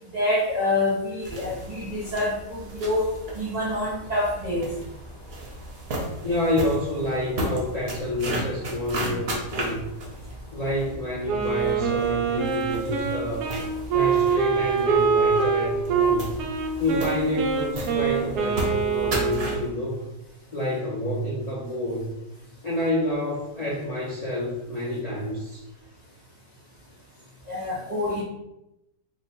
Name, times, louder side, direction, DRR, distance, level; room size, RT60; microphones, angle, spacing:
voice 1, 0.1-4.7 27.5-28.2, left 1 dB, 70° right, -5 dB, 0.4 m, -26 dB
sound 1, 1.2-19.7, right 1 dB, 50° right, 0.8 m, -35 dB
voice 2, 6.2-9.9 10.5-13.5 13.9-16.3 16.8-20.1 20.5-22.1 22.6-25.6, left 1 dB, 60° left, -7 dB, 0.4 m, -28 dB
Wind instrument woodwind instrument, 11.3-19.7, right 6 dB, 85° right, 1.1 m, -24 dB
2.9 x 2.1 x 4.1 m, 0.89 s
omnidirectional pair, 1.7 m